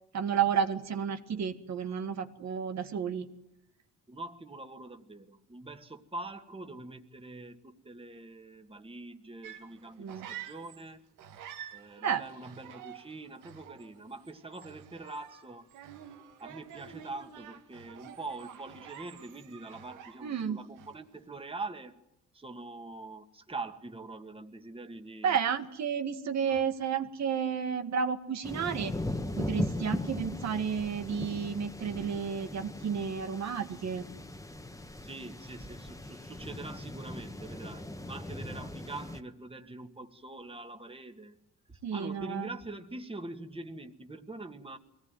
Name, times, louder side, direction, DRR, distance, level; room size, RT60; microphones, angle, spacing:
voice 1, 0.1-3.3 10.0-10.3 12.0-12.2 20.2-20.6 25.2-29.0 29.4-34.1 41.8-42.5, right 7 dB, 65° right, 7 dB, 2.0 m, -31 dB
voice 2, 4.1-11.0 11.7-15.7 16.4-22.0 22.3-25.4 26.5-26.6 35.0-41.4 41.7-44.8, right 2 dB, 20° right, 6 dB, 2.2 m, -44 dB
sound 1, 9.4-10.9 11.2-20.5 20.8-21.2, right 10 dB, 90° right, 2.4 m, -49 dB
sound 2, 28.4-39.2, left 1 dB, 10° left, 1.6 m, -38 dB
22.5 x 18.0 x 9.3 m, 0.87 s
cardioid pair, 90°, 30 cm